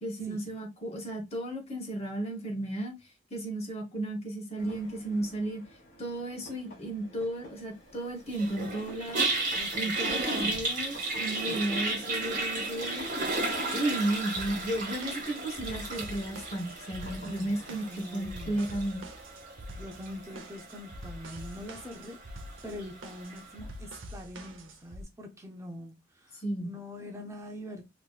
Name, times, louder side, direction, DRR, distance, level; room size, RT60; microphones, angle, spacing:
voice 1, 0.0-2.9 3.3-5.6 6.0-9.3 9.7-13.1 13.7-17.9 18.1-19.0 26.4-26.7, right 1 dB, 35° left, 1.0 m, -34 dB
sound 1, 4.6-20.1, equal, 50° left, 1.3 m, -50 dB
Toilet flush, 8.3-23.5, right 2 dB, 45° right, 1.2 m, -35 dB
voice 2, 9.6-10.7 11.4-11.6 17.2-18.6 19.7-22.2 22.6-27.8, left 1 dB, 15° right, 0.5 m, -44 dB
sound 2, 14.4-25.0, equal, 80° right, 0.6 m, -45 dB
3.1 x 3.0 x 2.3 m
head